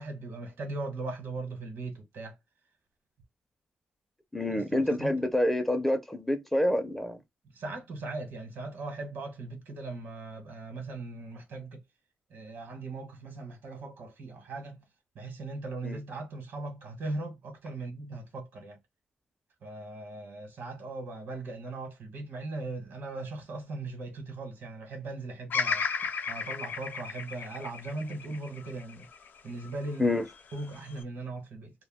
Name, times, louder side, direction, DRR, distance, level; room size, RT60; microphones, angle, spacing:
voice 1, 0.0-2.3 4.5-5.1 7.5-11.8 12.3-14.8 15.1-18.8 19.6-25.8 26.3-29.1 29.4-30.2 30.5-31.7, right 2 dB, 85° right, 1.0 m, -39 dB
voice 2, 4.3-7.2 15.8-16.0 30.0-30.2, left 1 dB, 5° left, 0.4 m, -27 dB
Bird vocalization bird call bird song, 25.5-29.7 30.3-31.0, left 5 dB, 65° left, 0.4 m, -34 dB
2.2 x 2.2 x 3.4 m
cardioid pair, 115°, 3 cm